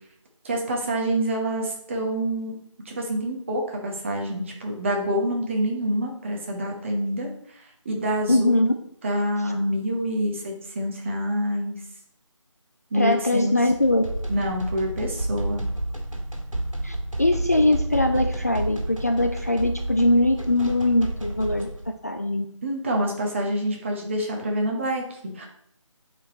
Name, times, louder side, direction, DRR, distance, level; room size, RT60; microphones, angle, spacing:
voice 1, 0.4-2.6 2.8-8.7 9.0-11.7 12.9-13.5 14.3-15.6 22.6-25.5, equal, 25° right, 0 dB, 1.1 m, -27 dB
voice 2, 8.3-8.7 12.9-14.0 16.8-22.5, left 1 dB, 30° left, 5 dB, 0.3 m, -22 dB
sound 1, 13.7-21.9, right 1 dB, 80° right, 1.7 m, -30 dB
8.6 x 4.5 x 4.2 m, 0.70 s
figure-of-eight pair, 160°, 17 cm